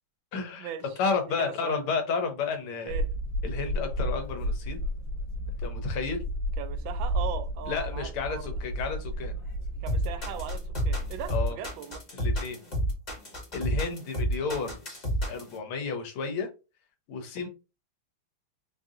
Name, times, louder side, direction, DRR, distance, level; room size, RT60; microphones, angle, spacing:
voice 1, 0.3-3.0 3.4-4.8 5.6-6.2 7.7-9.3 11.3-11.6 12.1-12.6 13.5-14.8 15.3-16.5 17.1-17.5, left 5 dB, 80° left, 1.7 m, -32 dB
voice 2, 1.4-1.8 2.8-3.1 6.6-8.6 9.8-12.0 14.4-14.6, right 9 dB, 75° right, 1.3 m, -39 dB
sound 1, 2.9-11.3, equal, 65° left, 1.7 m, -32 dB
sound 2, 9.9-15.5, equal, 25° left, 1.0 m, -29 dB
4.6 x 2.4 x 2.7 m
omnidirectional pair, 2.3 m